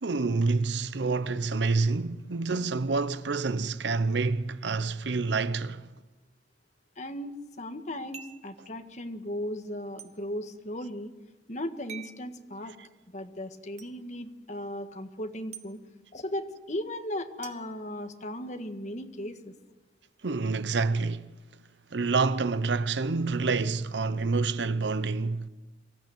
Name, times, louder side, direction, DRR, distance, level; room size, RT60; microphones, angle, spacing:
voice 1, 0.0-5.9 20.2-21.2 21.9-25.5, right 4 dB, 75° right, 0.8 m, -28 dB
voice 2, 7.0-11.1 11.5-12.8 13.1-15.8 16.1-19.5, left 1 dB, 40° left, 1.6 m, -37 dB
sound 1, 8.1-8.5 10.0-10.1 11.9-12.2 13.8-13.9 15.5-15.7 17.4-18.5, right 7 dB, 40° right, 1.5 m, -46 dB
24.0 x 15.0 x 9.0 m
head